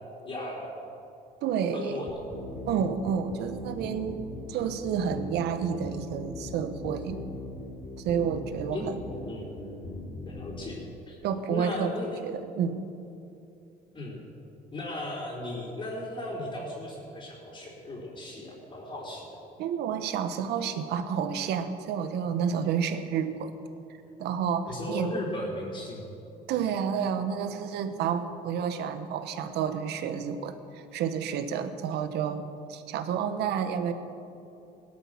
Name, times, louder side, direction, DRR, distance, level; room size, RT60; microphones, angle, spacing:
voice 1, 0.2-0.6 1.7-2.1 8.7-8.9 9.3-9.5 10.3-11.2 11.5-12.2 13.9-14.2 14.7-19.2 24.7-26.0, left 1 dB, 35° left, -4 dB, 4.3 m, -36 dB
voice 2, 1.4-2.0 2.7-4.2 4.5-7.2 8.0-9.0 11.2-11.9 12.2-12.9 19.6-23.5 24.2-25.1 26.5-33.9, right 7 dB, 80° right, 9 dB, 1.2 m, -30 dB
sound 1, 2.1-10.8, left 2 dB, 55° left, 3.0 m, -40 dB
18.0 x 12.0 x 6.0 m, 2.7 s
cardioid pair, 110°, 17 cm